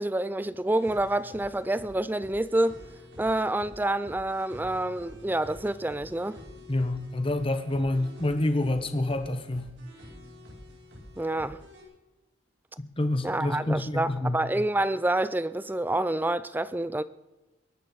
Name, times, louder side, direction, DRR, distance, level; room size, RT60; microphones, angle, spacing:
voice 1, 0.0-2.8 3.2-6.4 11.2-11.6 13.2-17.0, right 1 dB, 10° right, 0.4 m, -28 dB
sound 1, 0.8-11.8, left 1 dB, 70° right, 6.1 m, -48 dB
voice 2, 6.7-9.7 12.8-14.4, left 1 dB, 30° left, 1.2 m, -28 dB
22.0 x 11.5 x 4.0 m
head